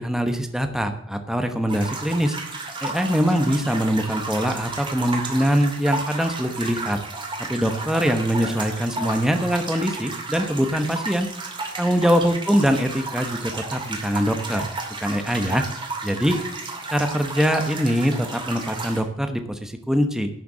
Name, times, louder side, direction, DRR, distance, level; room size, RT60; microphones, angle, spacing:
voice 1, 0.0-2.4 2.8-7.0 7.5-11.3 11.8-14.7 15.0-15.6 16.0-16.4 16.9-20.3, equal, 5° right, 6 dB, 1.1 m, -23 dB
sound 1, 1.7-19.0, right 3 dB, 25° right, 2.5 m, -33 dB
12.0 x 6.8 x 7.8 m, 0.75 s
head